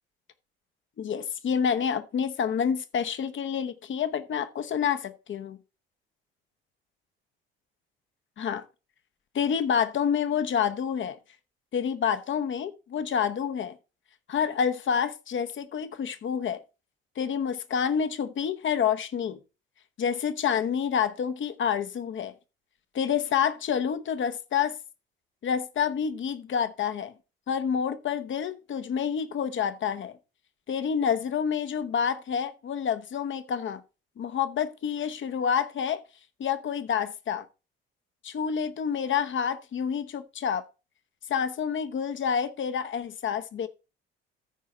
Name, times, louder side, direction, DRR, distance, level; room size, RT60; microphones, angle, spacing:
voice 1, 1.0-5.6 8.4-8.6 9.3-11.2 11.7-13.8 14.3-16.6 17.2-19.4 20.0-22.3 22.9-24.8 25.4-27.1 27.5-30.2 30.7-33.8 34.2-36.0 36.4-37.5 38.2-40.7 41.3-43.7, left 7 dB, 40° left, 1.0 m, -28 dB
14.0 x 4.7 x 4.4 m
hypercardioid pair, 55°, 29 cm